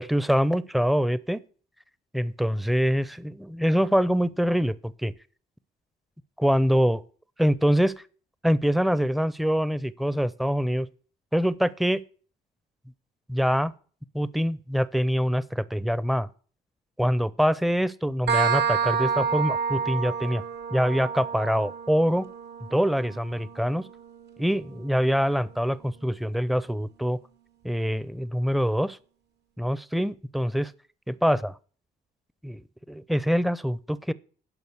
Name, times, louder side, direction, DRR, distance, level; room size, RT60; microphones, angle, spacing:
voice 1, 0.0-1.4 2.1-5.1 6.4-7.0 7.4-7.9 8.4-10.9 11.3-12.0 13.3-13.7 14.1-16.3 17.0-20.4 20.7-22.3 22.6-23.9 24.4-27.2 27.6-29.0 29.6-30.7 31.2-31.5 32.4-32.6 32.9-34.1, equal, ahead, 0.5 m, -24 dB
sound 1, 18.3-25.7, right 6 dB, 55° right, 0.9 m, -30 dB
11.5 x 5.1 x 8.2 m
cardioid pair, 90°, 20 cm